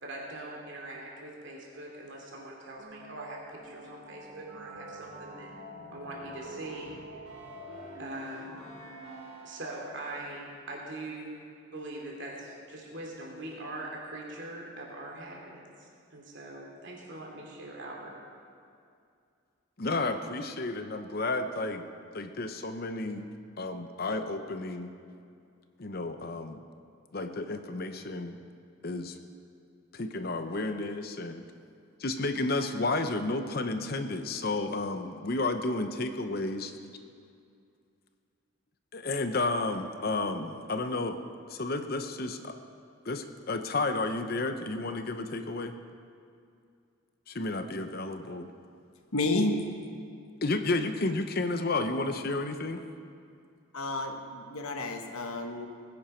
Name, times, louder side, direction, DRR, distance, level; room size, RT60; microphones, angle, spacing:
voice 1, 0.0-5.5 5.9-7.0 8.0-8.6 9.4-11.4 11.7-18.2, right 2 dB, 55° right, -2 dB, 2.8 m, -42 dB
sound 1, 2.8-10.1, equal, 80° right, 3.1 m, -46 dB
voice 2, 19.8-21.8 22.1-23.3 23.6-24.9 25.8-26.6 27.1-28.4 28.8-29.2 29.9-31.4 32.0-36.7 38.9-41.2 41.5-42.6 43.1-45.8 47.3-48.5 50.4-52.8, left 2 dB, 45° left, 8 dB, 0.7 m, -32 dB
voice 3, 49.1-49.7 53.7-55.7, left 2 dB, 85° left, 5 dB, 1.3 m, -30 dB
20.0 x 10.5 x 4.4 m, 2.4 s
head